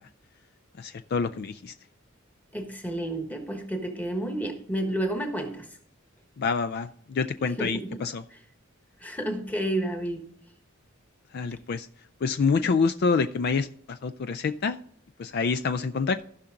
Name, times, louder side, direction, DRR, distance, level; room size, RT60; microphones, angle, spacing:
voice 1, 0.8-1.7 6.4-8.2 11.3-11.9 12.2-14.8 15.2-16.2, left 5 dB, 50° left, 11 dB, 0.4 m, -27 dB
voice 2, 2.5-5.6 7.6-8.0 8.3-8.4 9.0-10.2 12.6-12.7, right 1 dB, 10° left, 5 dB, 1.3 m, -31 dB
15.5 x 5.8 x 3.7 m, 0.64 s
head